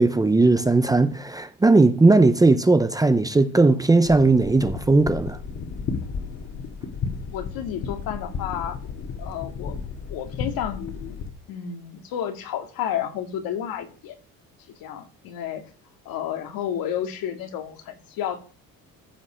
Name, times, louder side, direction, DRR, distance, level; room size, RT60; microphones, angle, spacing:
voice 1, 0.0-5.4, right 3 dB, 10° right, 0.6 m, -18 dB
sound 1, 4.1-11.3, left 5 dB, 45° left, 2.1 m, -33 dB
voice 2, 7.3-8.8 9.2-9.8 10.1-11.2 11.5-14.2 14.7-15.6 16.1-18.4, left 9 dB, 80° left, 2.2 m, -31 dB
14.5 x 5.4 x 6.2 m
cardioid pair, 140°, 35 cm